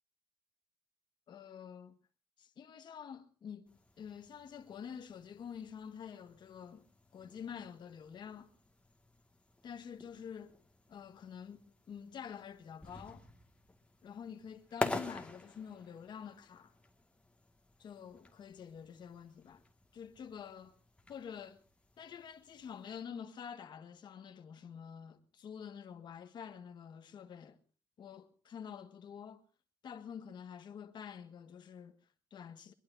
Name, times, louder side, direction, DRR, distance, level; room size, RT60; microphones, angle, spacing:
voice 1, 1.3-2.0 2.4-6.9 7.1-8.5 9.6-10.6 10.9-13.3 14.0-16.7 17.8-19.6 19.9-20.8 21.1-21.6 22.0-27.6 28.0-29.4 29.8-32.7, left 7 dB, 65° left, 1.6 m, -48 dB
sound 1, 3.7-23.0, left 2 dB, 15° left, 2.0 m, -48 dB
23.5 x 22.0 x 2.7 m
cardioid pair, 110°, 8 cm